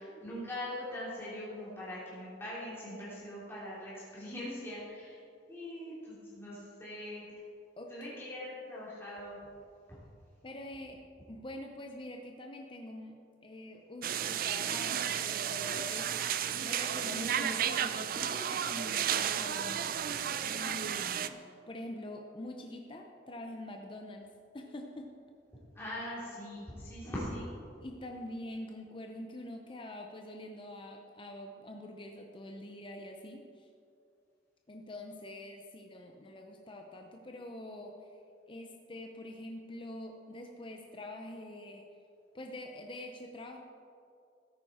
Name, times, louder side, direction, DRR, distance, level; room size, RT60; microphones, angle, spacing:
voice 1, 0.0-5.2 5.5-7.2 7.9-9.4 25.7-27.5, left 1 dB, 15° left, -9 dB, 3.1 m, -41 dB
voice 2, 7.8-8.2 10.4-11.0 11.3-16.3 16.6-20.1 20.4-25.2 27.8-33.7 34.7-38.2 38.5-41.9 42.3-43.6, left 1 dB, 30° left, 3 dB, 0.7 m, -45 dB
sound 1, 14.0-21.3, right 9 dB, 50° right, 0.4 m, -33 dB
13.5 x 9.5 x 4.3 m, 2.5 s
head